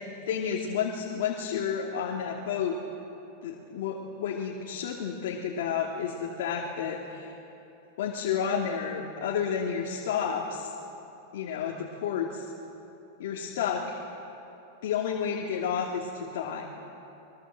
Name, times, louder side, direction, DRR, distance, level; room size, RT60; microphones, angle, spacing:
voice 1, 0.0-2.8 3.4-7.3 8.0-10.7 11.3-12.4 13.2-14.0 14.8-16.7, left 7 dB, 75° left, -1 dB, 2.7 m, -31 dB
25.0 x 22.5 x 7.8 m, 2.9 s
supercardioid pair, 155°, 0 cm